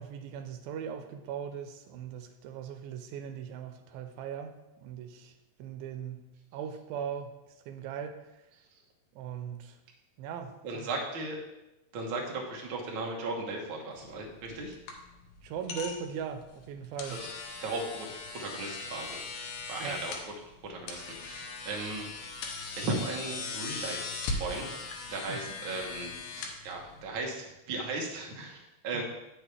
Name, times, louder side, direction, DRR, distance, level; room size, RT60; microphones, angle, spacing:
voice 1, 0.0-5.3 5.6-8.5 9.1-9.8 10.2-10.9 15.4-17.3 19.8-20.0 25.3-25.4 28.9-29.0, right 7 dB, 85° right, 7 dB, 2.4 m, -39 dB
voice 2, 10.6-11.4 11.9-14.7 17.1-17.2 17.6-18.1 18.3-20.1 20.6-22.1 22.8-24.8 25.1-29.0, right 2 dB, 70° right, 0 dB, 1.2 m, -36 dB
sound 1, 13.9-27.2, left 4 dB, 90° left, 2.8 m, -40 dB
8.9 x 6.2 x 3.3 m, 0.94 s
omnidirectional pair, 4.2 m